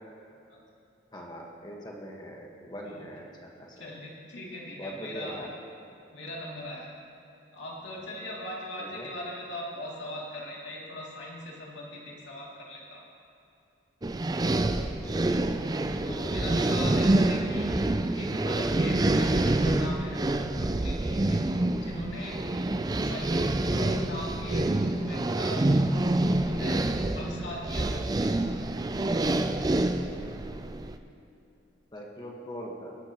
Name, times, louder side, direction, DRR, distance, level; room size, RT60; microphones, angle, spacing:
voice 1, 1.1-3.2 3.6-3.8 4.8-5.5 8.8-9.1 15.0-15.5 16.1-16.5 31.9-33.0, equal, 20° left, -1 dB, 1.4 m, -41 dB
voice 2, 3.8-5.4 6.1-6.9 7.5-13.0 15.4-17.7 18.2-20.5 20.8-21.4 21.8-22.4 23.0-25.7 26.4-26.8 27.1-28.0, left 1 dB, 75° left, -4 dB, 2.8 m, -40 dB
sound 1, 14.0-31.0, right 2 dB, 20° right, 0.4 m, -27 dB
19.5 x 11.5 x 3.0 m, 2.6 s
head